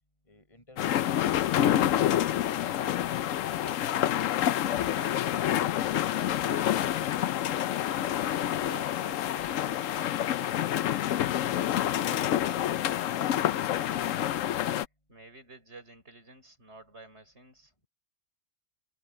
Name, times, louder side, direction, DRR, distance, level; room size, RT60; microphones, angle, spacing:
voice 1, 0.2-1.4, left 2 dB, 20° left, 6.3 m, -53 dB
sound 1, 0.8-14.9, left 11 dB, 70° left, 1.0 m, -28 dB
voice 2, 3.5-5.8 6.2-7.7 8.2-11.0 15.1-17.9, right 2 dB, 50° right, 5.8 m, -52 dB
omnidirectional pair, 1.5 m